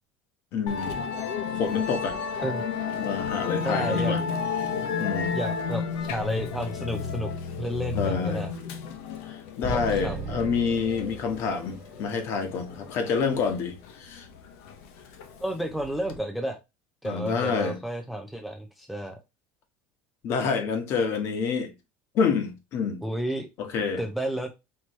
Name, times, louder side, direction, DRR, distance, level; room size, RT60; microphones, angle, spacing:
voice 1, 0.5-1.0 1.6-2.2 3.0-4.2 5.0-5.3 7.9-8.4 9.3-14.3 17.0-17.8 20.2-21.7 22.1-23.0 23.6-24.0, left 5 dB, 40° left, 1.1 m, -28 dB
Musical instrument, 0.7-16.2, left 5 dB, 70° left, 0.9 m, -32 dB
voice 2, 2.4-2.9 3.6-4.2 5.3-7.3 7.6-8.5 9.7-10.3 15.4-16.6 17.0-19.2 23.0-23.5 24.0-24.5, right 1 dB, ahead, 0.4 m, -32 dB
sound 1, 9.6-11.7, right 3 dB, 20° right, 0.8 m, -35 dB
4.4 x 3.0 x 3.0 m
cardioid pair, 170°, 6 cm